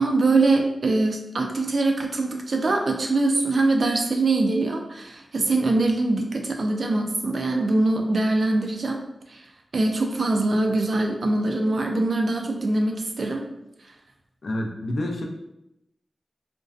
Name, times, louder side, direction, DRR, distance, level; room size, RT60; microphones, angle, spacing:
voice 1, 0.0-9.0 9.3-9.4 9.7-13.5, right 2 dB, 70° right, 2 dB, 0.4 m, -23 dB
voice 2, 14.4-15.2, left 1 dB, 70° left, 1 dB, 0.4 m, -28 dB
2.5 x 2.2 x 2.4 m, 0.86 s
cardioid pair, 45°, 0 cm